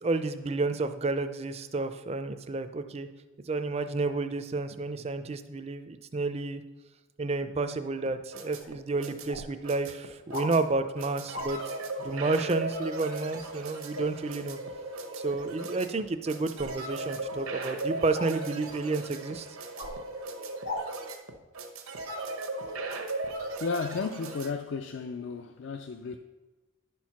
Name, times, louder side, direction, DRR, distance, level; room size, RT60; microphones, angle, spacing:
voice 1, 0.0-3.1 3.4-6.6 7.2-11.7 12.0-14.6 15.2-19.5, right 3 dB, 30° right, 0.4 m, -31 dB
sound 1, 8.1-24.5, right 2 dB, 80° right, 1.0 m, -37 dB
sound 2, 8.6-8.7 9.3-9.5 10.3-10.5 11.3-11.5 13.9-14.1 16.5-16.8 18.1-18.3 19.8-20.0 20.6-20.9 22.1-22.2, left 1 dB, 75° left, 1.0 m, -37 dB
voice 2, 23.3-26.2, left 5 dB, 60° left, 0.4 m, -34 dB
11.0 x 4.6 x 5.8 m
head